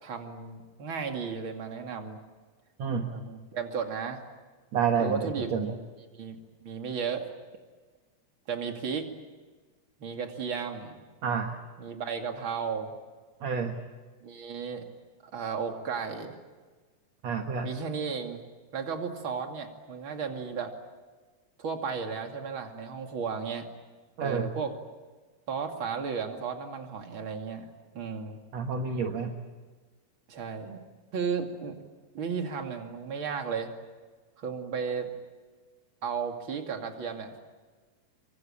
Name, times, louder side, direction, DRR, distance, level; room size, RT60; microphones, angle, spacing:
voice 1, 0.0-2.2 3.1-4.2 5.0-5.5 6.0-6.4 6.6-7.3 8.5-9.1 10.0-11.0 11.8-12.9 14.2-14.8 15.2-16.4 17.6-18.4 18.7-20.7 21.6-23.7 24.2-24.7 25.5-27.7 27.9-28.4 30.3-30.8 31.1-31.8 32.1-33.7 34.4-35.1 36.0-37.4, right 6 dB, 35° right, 4 dB, 2.8 m, -34 dB
voice 2, 4.7-5.7 11.2-11.6 13.4-13.8 17.2-17.7 24.2-24.5 28.5-29.3, right 6 dB, 55° right, 5 dB, 2.3 m, -29 dB
27.5 x 24.5 x 8.8 m, 1.4 s
omnidirectional pair, 4.3 m